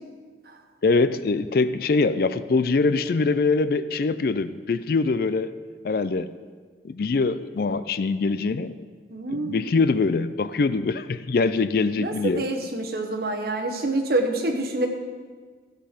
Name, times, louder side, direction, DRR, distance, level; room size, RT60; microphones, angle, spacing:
voice 1, 0.8-5.5 5.8-6.3 6.8-8.7 9.3-12.4, left 3 dB, 55° left, 14 dB, 0.4 m, -23 dB
voice 2, 9.1-9.7 12.0-14.9, right 2 dB, 55° right, 3 dB, 1.2 m, -27 dB
13.5 x 7.6 x 5.0 m, 1.5 s
head